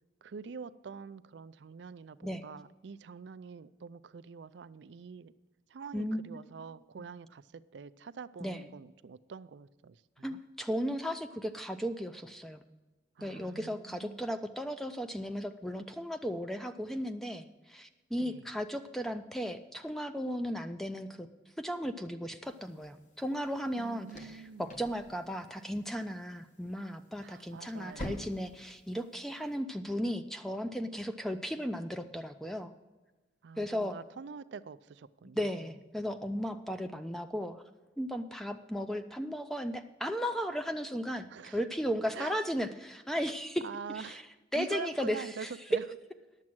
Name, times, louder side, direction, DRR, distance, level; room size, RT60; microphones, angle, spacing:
voice 1, 0.2-5.3 5.7-10.4 13.2-14.3 18.2-18.5 23.8-24.8 27.2-28.4 33.4-35.6 41.3-41.6 42.1-42.3 43.6-44.2 44.5-45.8, right 5 dB, 75° right, 0.4 m, -45 dB
voice 2, 5.9-6.3 8.4-8.6 10.2-12.6 13.2-21.3 21.6-32.7 33.6-34.0 35.3-37.6 38.0-43.6 44.0-44.2 44.5-45.5, equal, ahead, 0.4 m, -35 dB
sound 1, 22.4-29.6, equal, 45° left, 1.2 m, -49 dB
10.5 x 7.4 x 6.1 m
head